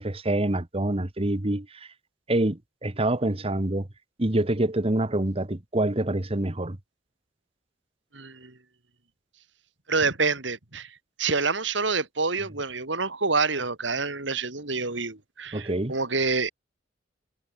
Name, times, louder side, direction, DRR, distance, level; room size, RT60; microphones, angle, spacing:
voice 1, 0.0-1.7 2.3-3.9 4.2-6.8 15.5-15.9, right 1 dB, 30° right, 1.4 m, -26 dB
voice 2, 8.1-8.6 9.9-16.5, right 4 dB, 70° right, 3.1 m, -27 dB
head